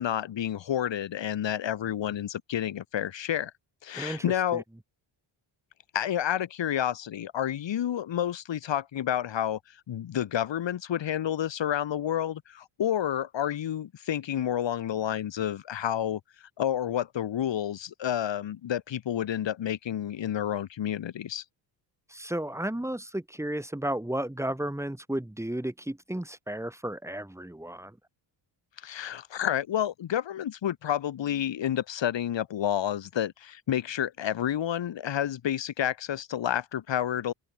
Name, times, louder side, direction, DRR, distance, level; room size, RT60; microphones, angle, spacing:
voice 1, 0.0-3.5 3.8-4.6 5.9-9.6 9.9-21.4 28.8-37.3, left 10 dB, 70° left, 6.3 m, -30 dB
voice 2, 3.9-4.2 4.5-4.6 22.1-28.0, right 1 dB, 5° right, 5.6 m, -33 dB
open air
cardioid pair, 135°, 46 cm